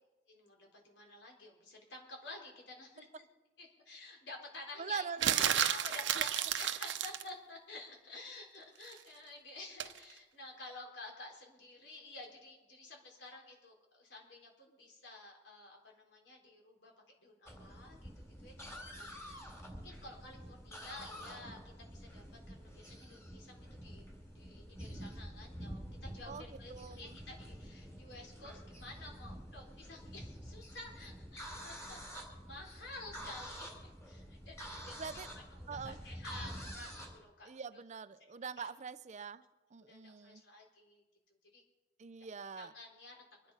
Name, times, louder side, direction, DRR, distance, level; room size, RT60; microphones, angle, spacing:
voice 1, 0.3-3.3 3.6-16.9 17.2-19.4 19.7-35.2 35.5-37.8 38.2-38.7 39.8-41.0 41.5-41.6 42.5-43.2, left 2 dB, 65° left, 4.2 m, -51 dB
voice 2, 4.8-5.4 6.2-6.3 26.3-26.4 26.7-27.1 35.0-35.3 35.7-36.0 37.4-39.4 39.7-40.4 42.0-42.7, right 6 dB, 40° right, 0.5 m, -43 dB
sound 1, 5.2-7.3 9.8-10.0, right 10 dB, 80° right, 0.8 m, -32 dB
sound 2, 17.5-37.2, equal, 15° left, 3.8 m, -48 dB
24.5 x 10.5 x 5.6 m
head